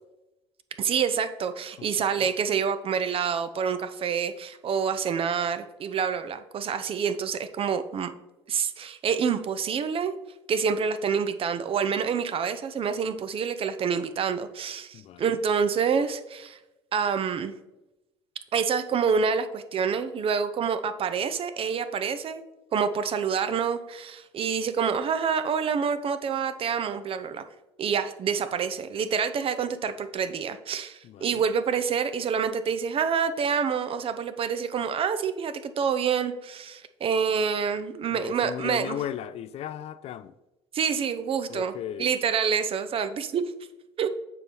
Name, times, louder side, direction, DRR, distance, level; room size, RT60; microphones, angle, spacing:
voice 1, 0.8-8.1 8.5-10.1 10.5-16.6 16.9-17.5 18.5-22.4 22.7-27.4 27.8-39.0 40.7-41.7 42.0-43.4 44.0-44.1, right 6 dB, 40° right, 11 dB, 0.6 m, -27 dB
voice 2, 14.9-15.5 31.0-31.5 38.1-40.3 41.5-42.1, left 10 dB, 45° left, 14 dB, 0.4 m, -36 dB
6.9 x 5.3 x 3.0 m, 0.98 s
hypercardioid pair, 55°, 14 cm